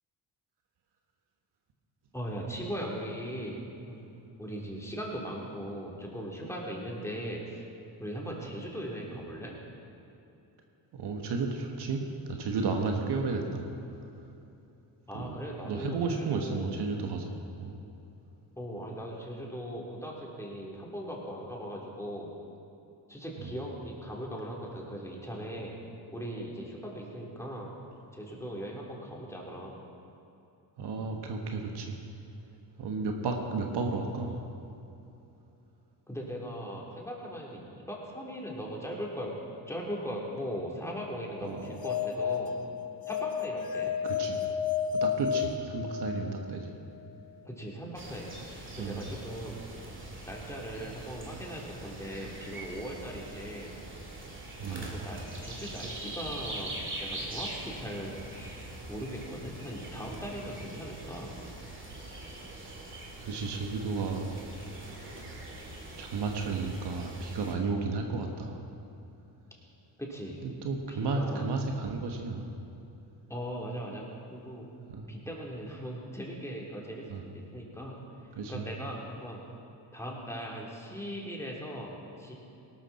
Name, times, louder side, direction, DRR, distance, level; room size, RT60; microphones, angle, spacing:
voice 1, 2.1-3.6 3.9-4.0 4.4-7.7 8.0-9.6 15.1-16.7 18.6-22.3 23.1-25.8 26.1-27.7 28.1-29.7 36.1-39.3 39.7-42.6 43.1-44.0 47.5-49.7 50.3-53.7 54.7-61.3 70.0-70.4 70.9-71.5 73.3-74.7 75.1-78.0 78.5-79.4 79.9-82.4, equal, 5° left, -3 dB, 3.5 m, -39 dB
voice 2, 10.9-13.7 15.1-15.4 15.6-17.3 17.6-17.7 23.4-23.5 30.8-32.0 32.8-34.4 41.4-41.8 44.0-44.4 45.0-46.7 48.8-49.0 54.6-54.9 62.5-62.8 63.2-64.4 66.0-68.6 70.4-72.5 74.9-75.0 77.1-77.2 78.3-78.6, right 4 dB, 65° right, 3 dB, 1.6 m, -33 dB
sound 1, 41.6-46.4, left 7 dB, 55° left, 1.0 m, -32 dB
sound 2, 47.9-67.5, right 2 dB, 25° right, 2.7 m, -43 dB
18.0 x 12.5 x 4.3 m, 2.8 s
cardioid pair, 80°, 44 cm